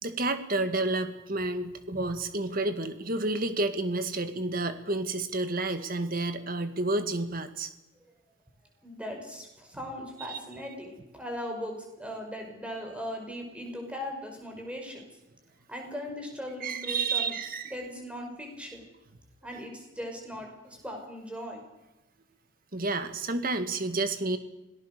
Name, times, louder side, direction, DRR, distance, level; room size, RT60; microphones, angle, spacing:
voice 1, 0.0-7.7 10.3-10.4 16.6-17.7 22.7-24.4, right 2 dB, 45° right, 9 dB, 2.0 m, -30 dB
voice 2, 8.8-15.1 15.7-17.3 17.6-18.8 19.4-21.6, equal, 5° right, 2 dB, 5.4 m, -39 dB
26.5 x 18.0 x 6.8 m, 0.94 s
head